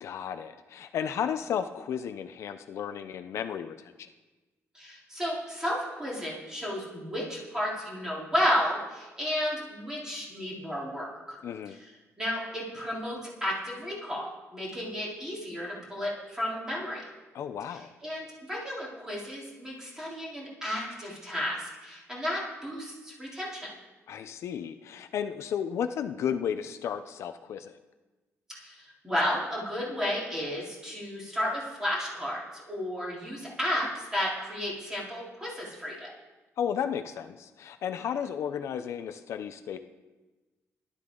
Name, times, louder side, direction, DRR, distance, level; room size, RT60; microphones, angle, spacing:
voice 1, 0.0-4.1 11.4-11.8 17.3-17.9 24.1-27.8 36.6-39.8, left 8 dB, 65° left, 8 dB, 0.6 m, -33 dB
voice 2, 4.7-11.4 11.7-11.8 12.2-17.0 18.0-23.7 28.5-36.1, equal, 10° right, -5 dB, 3.6 m, -33 dB
17.0 x 11.5 x 3.9 m, 1.2 s
cardioid pair, 150°, 5 cm